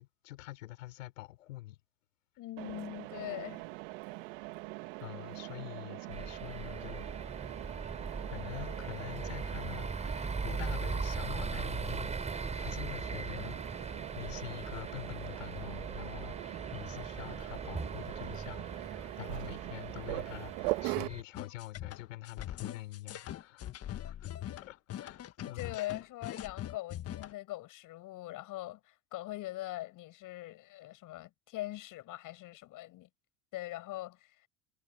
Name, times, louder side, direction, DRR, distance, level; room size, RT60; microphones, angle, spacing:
voice 1, 0.0-1.8 5.0-7.1 8.3-24.3 24.6-25.8, left 17 dB, 85° left, 3.7 m, -46 dB
voice 2, 2.4-3.6 24.3-24.4 25.5-33.1 33.5-34.3, left 16 dB, 55° left, 7.1 m, -42 dB
Mechanisms, 2.6-21.1, right 24 dB, 70° right, 1.5 m, -42 dB
sound 1, 6.1-21.2, right 4 dB, 15° right, 5.9 m, -40 dB
sound 2, 21.3-27.3, left 12 dB, 40° left, 1.6 m, -42 dB
supercardioid pair, 100°, 38 cm